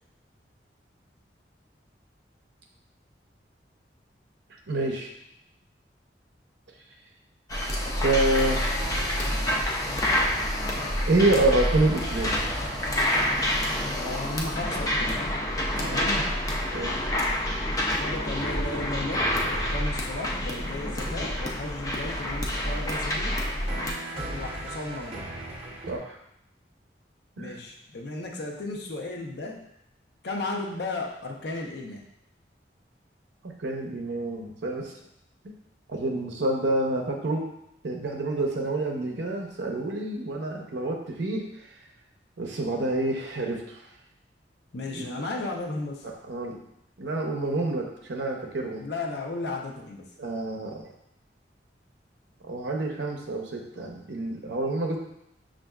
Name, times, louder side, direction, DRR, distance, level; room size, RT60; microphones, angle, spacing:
voice 1, 4.7-5.1 8.0-8.6 11.0-12.4 16.7-17.0 25.9-26.2 27.4-27.6 33.4-34.9 35.9-37.5 37.8-41.5 42.4-43.8 44.9-45.1 46.0-46.6 47.0-48.8 50.2-50.9 52.4-55.0, right 2 dB, 80° right, 1 dB, 0.6 m, -27 dB
sound 1, 7.5-23.9, left 1 dB, 20° left, 0.4 m, -28 dB
sound 2, 7.9-17.7 18.4-26.0, right 1 dB, 30° right, 0.8 m, -41 dB
voice 2, 14.0-15.3 15.8-16.3 18.0-23.4 24.1-25.3 27.4-29.6 30.2-32.1 44.7-46.1 48.8-50.1, left 2 dB, 65° left, 1 dB, 0.6 m, -34 dB
6.2 x 2.5 x 2.3 m, 0.79 s
head